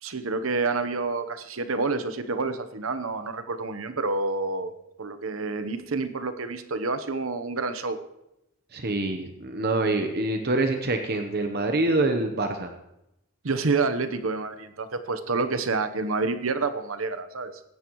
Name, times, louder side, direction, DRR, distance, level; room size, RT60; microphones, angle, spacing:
voice 1, 0.0-4.7 5.0-8.0 13.4-17.6, right 3 dB, 80° right, 10 dB, 1.0 m, -28 dB
voice 2, 8.7-12.7, right 2 dB, 50° right, 5 dB, 1.0 m, -25 dB
21.0 x 10.5 x 3.1 m, 0.86 s
head